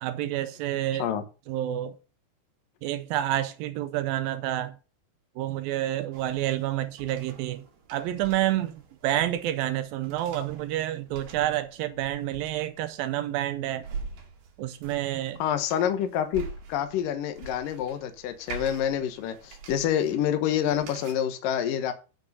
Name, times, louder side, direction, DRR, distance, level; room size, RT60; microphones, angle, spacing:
voice 1, 0.0-1.1 1.5-2.0 2.8-4.8 5.4-7.7 7.9-8.8 9.0-13.9 14.6-15.4, right 13 dB, 80° right, 2.1 m, -29 dB
sound 1, 6.1-21.1, right 4 dB, 65° right, 3.5 m, -45 dB
voice 2, 15.4-21.9, left 9 dB, 65° left, 2.5 m, -27 dB
11.0 x 5.3 x 5.4 m
omnidirectional pair, 4.8 m